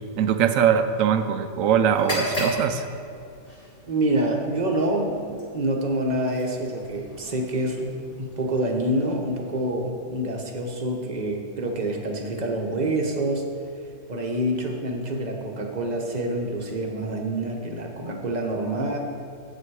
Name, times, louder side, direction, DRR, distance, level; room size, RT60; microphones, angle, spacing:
voice 1, 0.2-2.9, right 8 dB, 70° right, 9 dB, 1.0 m, -21 dB
sound 1, 1.9-9.7, left 1 dB, 25° left, 2.1 m, -36 dB
voice 2, 3.9-7.9 8.2-13.5 14.1-19.0, right 1 dB, 35° right, 1 dB, 1.0 m, -27 dB
8.9 x 8.3 x 4.8 m, 2.4 s
omnidirectional pair, 1.5 m